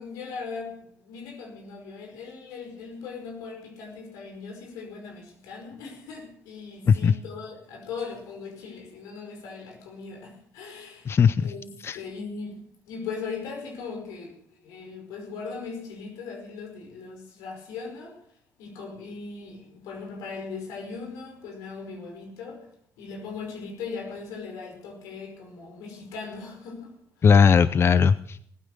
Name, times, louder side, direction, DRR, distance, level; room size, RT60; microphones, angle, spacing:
voice 1, 0.0-11.1 11.4-18.2 18.6-22.7 23.0-26.9, left 5 dB, 90° left, 5.1 m, -39 dB
voice 2, 11.1-11.5 11.8-12.0 27.2-28.4, left 6 dB, 45° left, 0.6 m, -18 dB
19.5 x 9.3 x 6.6 m
supercardioid pair, 70°, 6 cm